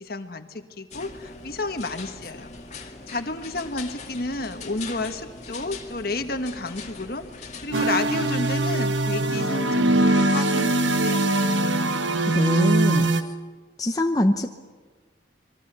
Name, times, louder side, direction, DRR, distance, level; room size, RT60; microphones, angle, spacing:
voice 1, 0.0-11.4, left 2 dB, 55° left, 7 dB, 1.5 m, -31 dB
sound 1, 0.9-7.9, left 3 dB, 35° left, 2.1 m, -40 dB
sound 2, 7.7-13.2, right 2 dB, 80° right, 1.2 m, -22 dB
voice 2, 12.2-13.2 13.8-14.6, left 1 dB, 20° left, 4 dB, 0.8 m, -24 dB
27.0 x 22.0 x 6.9 m, 1.4 s
head